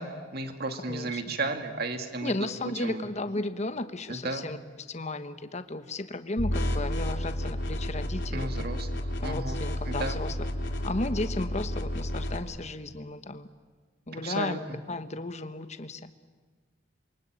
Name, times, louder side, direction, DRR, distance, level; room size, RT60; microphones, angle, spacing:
voice 1, 0.0-2.3 2.6-3.0 4.1-4.5 8.3-10.2 14.1-14.8, right 2 dB, 55° right, 6 dB, 2.1 m, -34 dB
voice 2, 0.9-1.4 2.2-4.6 4.9-8.5 9.2-10.5 10.8-13.5 14.1-14.6 14.9-16.1, left 2 dB, 40° left, 10 dB, 1.2 m, -34 dB
sound 1, 6.4-12.4, left 1 dB, 80° left, 3.5 m, -31 dB
28.0 x 24.0 x 8.9 m, 1.4 s
head